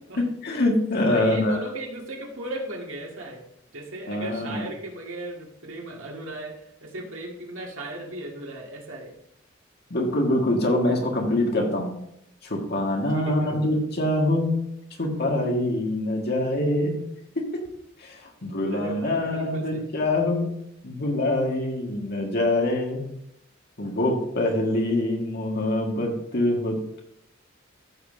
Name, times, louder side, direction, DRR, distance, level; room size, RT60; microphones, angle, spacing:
voice 1, 0.2-1.6 4.1-4.7 9.9-12.0 12.4-17.1 17.4-17.6 18.0-23.1 23.8-27.0, left 1 dB, 55° left, 1 dB, 1.9 m, -25 dB
voice 2, 1.1-3.4 3.7-9.1 13.1-13.6 18.7-19.8, right 1 dB, 75° right, 0 dB, 2.0 m, -36 dB
14.5 x 7.1 x 2.7 m, 0.79 s
head